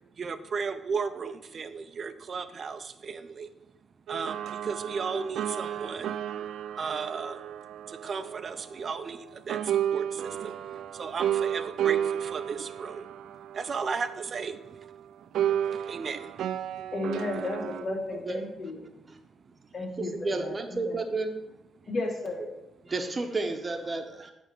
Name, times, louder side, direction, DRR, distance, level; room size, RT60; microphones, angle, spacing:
voice 1, 0.2-3.5 4.1-6.2 6.7-7.4 7.9-14.9 15.2-16.9 17.6-17.7 18.9-19.0, right 5 dB, 45° right, 11 dB, 0.7 m, -35 dB
sound 1, 4.1-9.2 9.5-15.0 15.3-17.9, right 10 dB, 75° right, 0.3 m, -32 dB
voice 2, 16.9-18.9 19.7-20.9 21.9-22.4, left 2 dB, 50° left, -3 dB, 3.2 m, -33 dB
voice 3, 20.0-21.3 22.8-24.3, right 3 dB, 30° right, 5 dB, 1.1 m, -31 dB
9.1 x 3.6 x 6.8 m, 0.90 s
cardioid pair, 90°, 0 cm